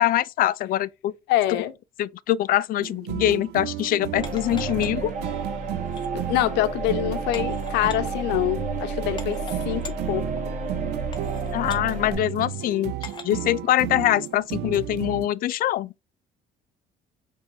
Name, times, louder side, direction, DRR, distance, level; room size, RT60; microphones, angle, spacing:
voice 1, 0.0-1.1 2.0-5.1 11.5-15.9, left 13 dB, 60° left, 0.4 m, -24 dB
voice 2, 1.3-1.7 6.1-9.4 9.7-10.3, left 14 dB, 90° left, 0.7 m, -25 dB
sound 1, 2.8-15.3, right 13 dB, 80° right, 0.4 m, -33 dB
sound 2, 4.1-12.1, right 3 dB, 50° right, 1.2 m, -32 dB
sound 3, 4.2-5.1 5.8-6.1 7.3-8.0 8.7-8.8 9.2-10.0 10.6-10.7 11.1-11.8 13.0-13.4 14.0-14.1, left 5 dB, 25° left, 0.9 m, -41 dB
4.6 x 3.3 x 2.6 m
cardioid pair, 110°, 17 cm